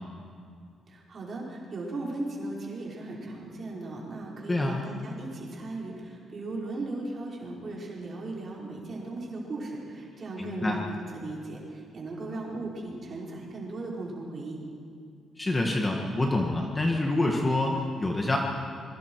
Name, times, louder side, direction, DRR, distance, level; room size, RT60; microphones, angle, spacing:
voice 1, 0.9-14.6, right 2 dB, 35° right, -3 dB, 4.7 m, -37 dB
voice 2, 4.5-4.8 10.4-10.8 15.4-18.4, left 2 dB, 15° left, 0 dB, 1.6 m, -26 dB
26.5 x 23.0 x 4.7 m, 2.3 s
cardioid pair, 180°, 0 cm